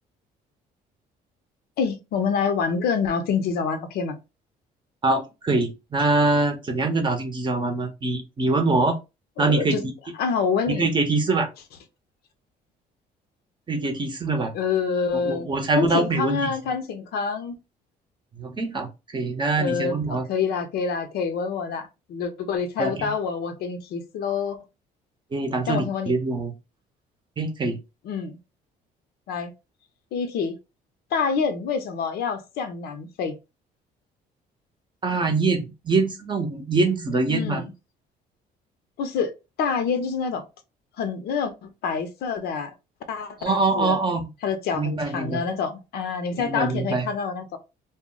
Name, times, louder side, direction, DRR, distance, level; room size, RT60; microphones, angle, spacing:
voice 1, 1.8-4.2 9.4-9.8 10.2-10.9 14.5-15.5 15.8-17.5 19.6-24.6 25.7-26.1 28.0-28.4 29.3-29.5 30.1-30.6 31.1-33.4 37.3-37.7 39.0-39.3 39.6-40.4 41.0-42.7 43.1-44.0 44.4-47.6, left 5 dB, 70° left, 0.6 m, -27 dB
voice 2, 5.0-9.0 9.4-9.9 10.8-11.5 13.7-14.5 15.1-16.5 18.4-20.2 22.8-23.1 25.3-26.5 27.4-27.8 35.0-37.6 43.4-44.2 44.7-45.4 46.4-47.1, right 3 dB, 30° right, 0.7 m, -24 dB
2.1 x 2.0 x 3.7 m
cardioid pair, 110°, 17 cm